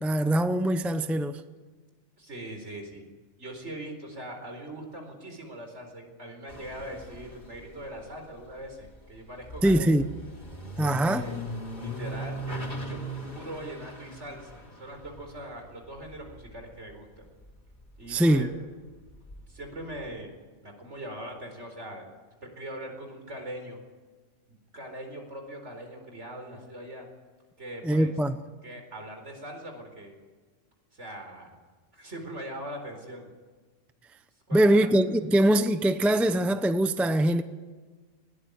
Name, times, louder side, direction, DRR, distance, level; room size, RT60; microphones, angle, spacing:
voice 1, 0.0-1.4 9.6-10.0 10.8-11.2 18.1-18.5 27.8-28.4 34.5-37.4, right 1 dB, ahead, 0.6 m, -22 dB
voice 2, 2.2-3.1 3.4-9.9 10.8-11.4 11.8-13.0 13.3-17.2 18.0-18.5 19.5-20.3 20.6-22.1 22.4-23.8 24.7-27.1 27.6-28.1 28.6-30.2 30.9-31.5 31.9-33.3 34.5-34.9, right 1 dB, 65° right, 4.6 m, -41 dB
sound 1, 6.5-17.5 17.7-20.1, equal, 40° left, 4.0 m, -40 dB
20.0 x 18.0 x 9.5 m
omnidirectional pair, 1.3 m